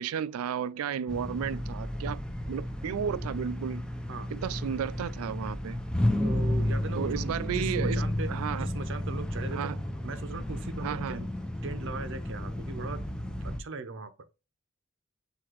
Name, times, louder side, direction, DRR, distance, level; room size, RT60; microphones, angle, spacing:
voice 1, 0.0-2.2 2.5-3.9 4.3-5.8 7.0-8.7 9.5-9.8 10.8-11.2, right 8 dB, 85° right, 0.3 m, -33 dB
sound 1, 1.1-13.6, left 1 dB, 5° left, 0.5 m, -32 dB
voice 2, 6.2-9.7 10.0-11.3 11.6-13.0 13.4-14.1, right 3 dB, 60° right, 0.7 m, -39 dB
6.0 x 2.9 x 2.9 m
head